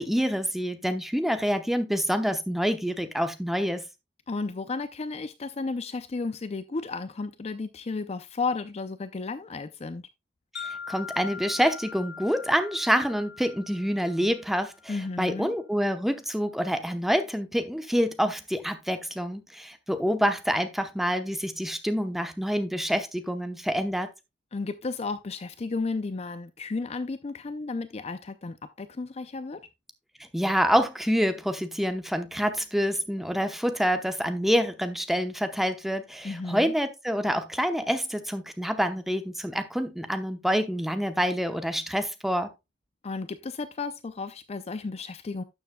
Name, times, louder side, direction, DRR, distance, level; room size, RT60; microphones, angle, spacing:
voice 1, 0.0-3.8 10.5-24.1 30.3-42.5, equal, ahead, 0.8 m, -27 dB
voice 2, 4.3-10.0 14.9-15.5 24.5-29.6 36.2-36.7 43.0-45.4, left 3 dB, 35° left, 0.4 m, -33 dB
Wind chime, 10.6-14.8, left 6 dB, 70° left, 2.1 m, -42 dB
12.0 x 7.1 x 2.2 m
head